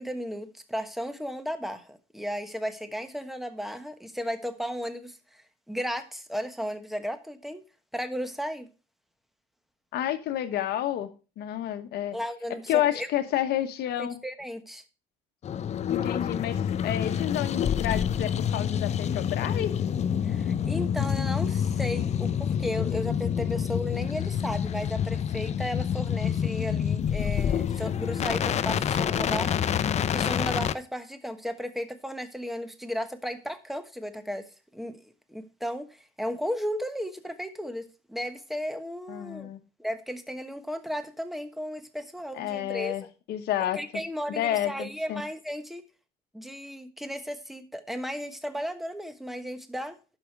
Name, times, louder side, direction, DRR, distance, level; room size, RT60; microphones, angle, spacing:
voice 1, 0.0-7.6 7.9-8.7 12.1-13.1 14.0-14.8 20.2-29.6 30.1-34.5 34.7-35.0 35.3-39.5 39.8-43.0 43.8-45.8 46.3-50.0, equal, ahead, 9 dB, 1.2 m, -34 dB
voice 2, 9.9-11.1 11.4-12.2 12.7-14.2 15.9-19.7 39.1-39.6 42.3-43.8 44.3-45.2, left 12 dB, 75° left, 8 dB, 1.1 m, -30 dB
sound 1, 15.4-30.7, left 8 dB, 40° left, 0.5 m, -27 dB
11.5 x 5.0 x 4.6 m, 0.33 s
cardioid pair, 110°, 17 cm